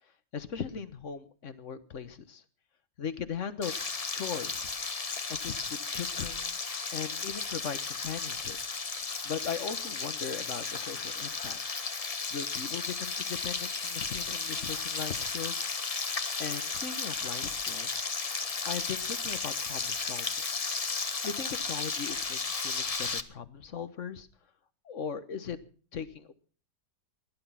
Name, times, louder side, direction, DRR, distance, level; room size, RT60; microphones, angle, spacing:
voice 1, 0.3-2.4 3.0-3.7 4.1-4.7 5.3-6.6 6.9-8.6 9.2-11.6 12.3-15.7 16.4-18.0 18.6-20.3 21.2-24.3 24.8-25.6 25.9-26.3, left 7 dB, 50° left, 12 dB, 1.4 m, -38 dB
Frying (food), 3.6-23.2, left 4 dB, 30° left, 0.6 m, -34 dB
17.0 x 11.5 x 5.7 m, 0.40 s
omnidirectional pair, 1.8 m